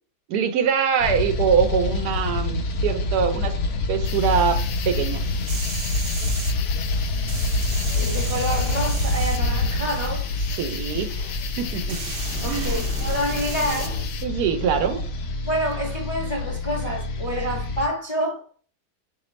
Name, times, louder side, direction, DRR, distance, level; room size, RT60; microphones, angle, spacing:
voice 1, 0.3-3.6 3.9-5.2 10.6-12.0 12.5-12.8 14.2-15.0, right 7 dB, 85° right, 1.2 m, -23 dB
sound 1, 1.0-17.9, left 2 dB, 65° left, 0.8 m, -27 dB
sound 2, 4.0-14.3, left 4 dB, 85° left, 1.2 m, -31 dB
sound 3, 5.5-6.5 7.3-10.2 11.2-11.3 11.9-14.0 15.7-15.8, right 3 dB, 55° right, 0.8 m, -35 dB
voice 2, 8.0-10.3 12.4-14.0 15.5-18.4, equal, 30° left, 0.6 m, -28 dB
4.1 x 3.0 x 3.0 m
omnidirectional pair, 1.6 m